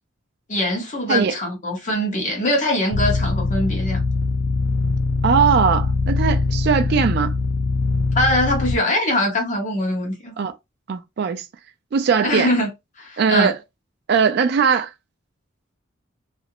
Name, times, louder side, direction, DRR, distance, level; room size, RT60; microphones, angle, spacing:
voice 1, 0.5-4.0 8.1-10.3 12.2-12.7 13.0-13.5, left 1 dB, 35° left, 0.8 m, -22 dB
sound 1, 2.9-8.8, left 3 dB, 70° left, 0.6 m, -22 dB
voice 2, 5.2-7.3 10.4-10.5 10.9-11.4 11.9-12.5 13.2-13.5 14.1-14.9, right 6 dB, 50° right, 0.3 m, -19 dB
2.4 x 2.0 x 2.8 m
head